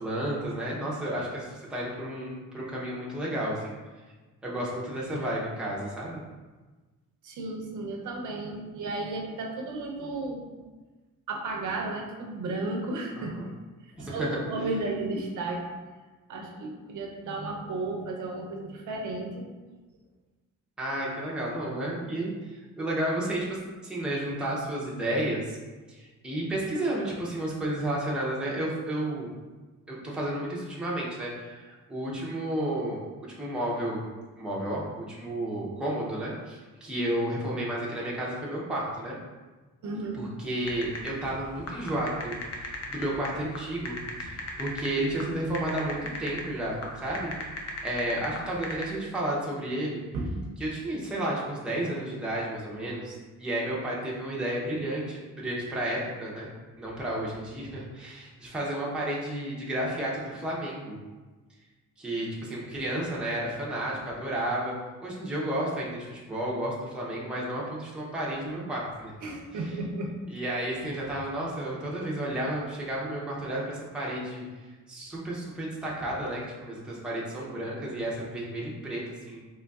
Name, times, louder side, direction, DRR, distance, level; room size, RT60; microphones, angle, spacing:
voice 1, 0.0-3.8 4.4-6.2 13.2-13.5 14.1-14.4 20.8-25.6 25.9-29.3 29.9-33.0 33.4-34.0 34.4-39.2 40.1-47.3 47.6-50.0 50.6-56.5 56.8-61.0 62.0-64.7 65.0-69.1 70.3-74.4 74.9-79.4, right 1 dB, 5° right, -6 dB, 0.6 m, -32 dB
voice 2, 7.2-10.5 11.3-13.3 14.0-15.7 16.3-19.5 39.8-40.2 50.1-50.3 69.2-70.1, right 2 dB, 75° right, 0 dB, 0.6 m, -33 dB
sound 1, 40.6-48.9, left 2 dB, 55° left, 0.6 m, -37 dB
3.9 x 3.0 x 2.3 m, 1.3 s
cardioid pair, 150°, 31 cm